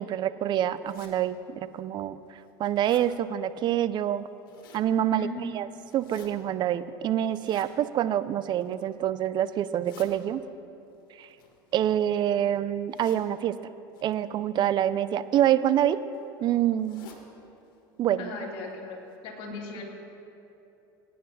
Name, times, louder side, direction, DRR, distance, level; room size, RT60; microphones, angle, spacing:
voice 1, 0.0-2.2 2.6-4.3 4.7-5.3 5.6-5.7 5.9-10.4 11.2-11.3 11.7-13.6 14.0-16.0 16.4-17.1 18.0-18.3, right 11 dB, 45° right, 14 dB, 0.5 m, -26 dB
sound 1, 0.8-1.1 1.8-1.9 2.3-3.1 4.2-4.9 5.8-6.3 7.3-7.7 8.4-8.9 9.6-10.1 11.2-12.2 12.9-13.2 13.9-14.1 15.2-15.4 15.8-15.9 16.1-16.2 16.8-17.2 17.6-17.7 18.0-18.1 18.7-18.8 19.1-19.2, left 6 dB, 80° left, 1.6 m, -51 dB
voice 2, 18.2-19.0 19.2-19.8, left 3 dB, 55° left, -1 dB, 2.3 m, -37 dB
19.5 x 9.5 x 2.8 m, 2.9 s
hypercardioid pair, 90°, 11 cm